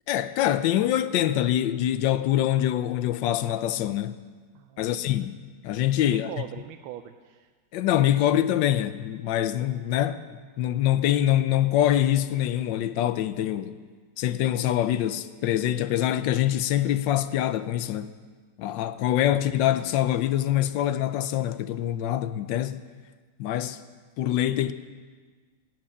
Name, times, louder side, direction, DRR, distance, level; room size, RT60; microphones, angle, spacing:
voice 1, 0.1-4.2 4.8-5.4 5.6-6.3 7.7-13.8 14.2-18.1 18.6-22.8 23.4-23.8 24.2-24.7, left 12 dB, 75° left, 1.3 m, -24 dB
voice 2, 4.5-5.3 6.1-7.5, right 12 dB, 90° right, 1.4 m, -41 dB
12.5 x 8.7 x 8.4 m
omnidirectional pair, 2.2 m